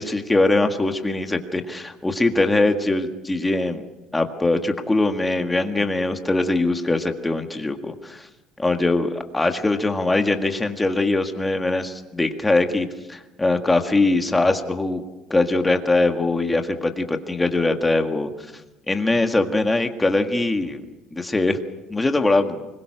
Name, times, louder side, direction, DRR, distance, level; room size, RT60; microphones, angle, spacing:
voice 1, 0.0-3.8 4.1-8.3 8.6-15.0 15.3-18.3 18.9-20.8 21.1-21.6 21.9-22.6, left 2 dB, 10° left, 5 dB, 1.8 m, -22 dB
25.0 x 22.0 x 6.3 m, 1.0 s
cardioid pair, 145°, 0 cm